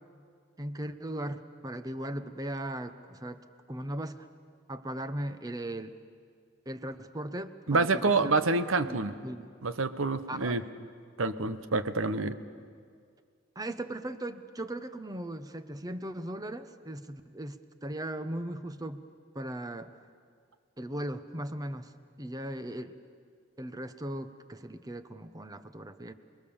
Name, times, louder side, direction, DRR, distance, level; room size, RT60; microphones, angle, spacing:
voice 1, 0.6-4.3 4.7-6.0 6.7-8.3 8.8-9.0 9.2-9.5 10.3-10.6 13.5-19.0 19.3-19.9 20.8-21.9 22.2-22.9 23.6-26.1, right 1 dB, 20° right, 10 dB, 0.9 m, -38 dB
voice 2, 7.7-9.1 9.6-10.6 11.2-12.4, right 3 dB, 85° right, 12 dB, 1.1 m, -27 dB
29.0 x 20.5 x 7.2 m, 2.1 s
head